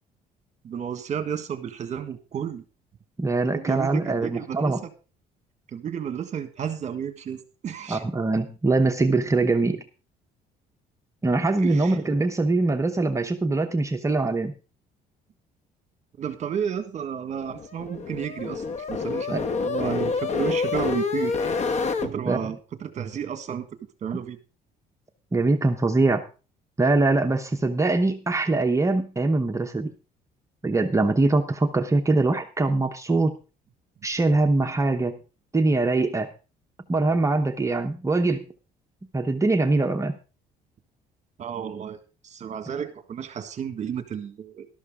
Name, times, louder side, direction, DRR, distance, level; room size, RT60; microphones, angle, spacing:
voice 1, 0.6-2.6 3.5-4.9 5.7-8.0 11.6-12.0 16.2-21.4 22.0-23.7 24.0-24.4 41.4-42.0 42.2-44.7, right 8 dB, 45° right, 9 dB, 1.6 m, -32 dB
voice 2, 3.2-4.8 7.9-9.8 11.2-14.5 19.3-19.5 22.3-22.4 24.1-24.2 25.3-26.2 26.8-29.9 30.6-33.4 34.0-35.2 35.5-36.3 36.9-38.4 39.1-40.2, right 3 dB, 15° right, 5 dB, 0.9 m, -23 dB
sound 1, 17.4-22.1, left 4 dB, 40° left, 1.2 m, -27 dB
13.0 x 12.5 x 3.7 m, 0.34 s
cardioid pair, 110°, 17 cm